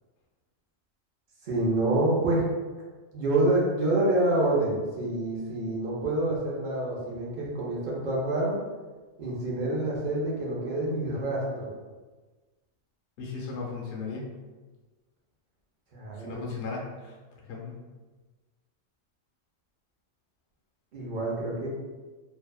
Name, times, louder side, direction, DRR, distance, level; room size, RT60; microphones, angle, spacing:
voice 1, 1.4-2.4 3.1-8.6 9.2-11.7 15.9-16.4 20.9-21.7, right 2 dB, 55° right, -4 dB, 0.6 m, -27 dB
voice 2, 13.2-14.4 16.2-17.1 17.4-17.8, left 4 dB, 65° left, -2 dB, 0.8 m, -36 dB
2.6 x 2.1 x 2.2 m, 1.3 s
omnidirectional pair, 1.4 m